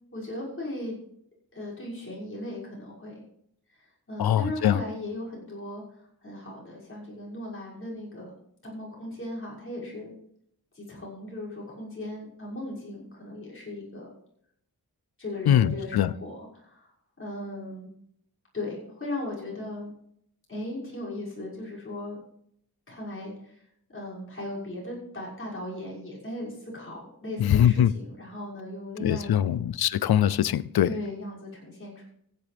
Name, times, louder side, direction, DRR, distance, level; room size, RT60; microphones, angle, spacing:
voice 1, 0.1-1.0 1.5-3.2 3.7-8.3 8.6-10.1 10.7-14.1 15.2-16.9 17.2-17.9 18.5-19.9 20.5-22.2 22.9-23.6 23.9-29.6 30.8-32.0, left 1 dB, 35° left, 6.3 m, -37 dB
voice 2, 4.2-4.8 15.5-16.1 27.4-27.9 29.0-30.9, left 10 dB, 85° left, 0.5 m, -22 dB
15.5 x 10.5 x 3.4 m
wide cardioid pair, 105°, 37 cm